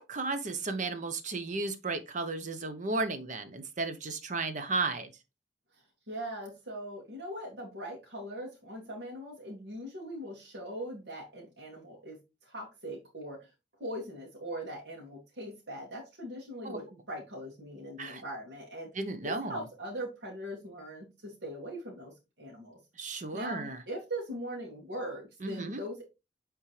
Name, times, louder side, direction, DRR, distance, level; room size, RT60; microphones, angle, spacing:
voice 1, 0.0-5.1 16.6-16.8 18.0-18.2 18.9-19.6 23.0-23.8 25.4-25.8, right 3 dB, 45° right, 0.9 m, -34 dB
voice 2, 6.1-12.2 12.4-13.5 13.8-18.9 19.2-22.8 23.1-26.0, equal, 70° right, 2.2 m, -41 dB
8.5 x 3.7 x 3.2 m
head